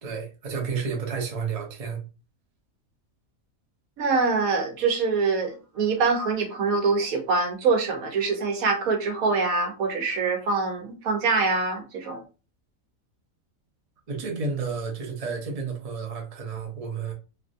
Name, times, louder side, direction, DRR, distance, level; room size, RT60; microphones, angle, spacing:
voice 1, 0.0-2.0 14.1-17.1, right 5 dB, 35° right, 0.7 m, -31 dB
voice 2, 4.0-12.2, right 4 dB, 90° right, 1.3 m, -24 dB
3.3 x 2.4 x 2.5 m
omnidirectional pair, 1.4 m